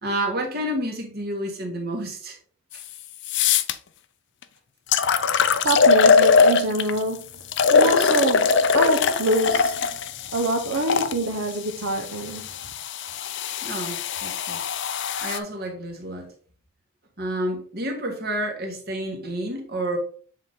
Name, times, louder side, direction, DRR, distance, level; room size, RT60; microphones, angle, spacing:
voice 1, 0.0-2.4 2.7-2.8 13.0-13.1 13.6-14.6 15.2-16.3 17.2-20.0, right 1 dB, 45° right, 1.6 m, -30 dB
sound 1, 2.7-2.8 3.2-3.7 4.4-4.5 4.9-7.0 7.5-11.1 12.0-15.4, left 5 dB, 55° left, 0.5 m, -21 dB
voice 2, 5.6-7.3 7.7-9.8 10.3-12.5, right 1 dB, 75° right, 0.8 m, -25 dB
7.3 x 4.0 x 3.6 m
head